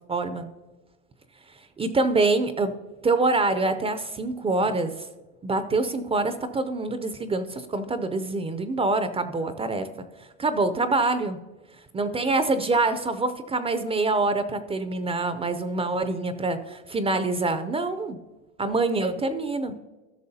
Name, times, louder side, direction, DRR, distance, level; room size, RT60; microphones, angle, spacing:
voice 1, 0.1-0.5 1.8-2.7 3.0-4.9 5.4-9.9 10.4-11.4 11.9-18.2 18.6-19.8, right 3 dB, 20° right, 10 dB, 0.5 m, -25 dB
13.5 x 6.2 x 2.7 m, 1.1 s
supercardioid pair, 100°, 33 cm